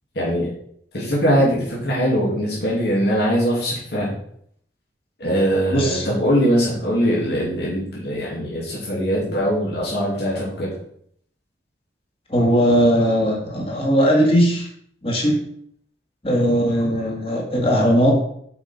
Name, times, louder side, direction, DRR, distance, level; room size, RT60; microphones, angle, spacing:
voice 1, 0.1-0.5 0.9-4.1 5.2-10.7, equal, 65° left, -6 dB, 2.3 m, -21 dB
voice 2, 5.7-6.1 12.3-14.7 15.0-15.4 16.2-18.2, equal, 30° left, -1 dB, 1.9 m, -18 dB
8.0 x 5.1 x 4.3 m, 0.66 s
head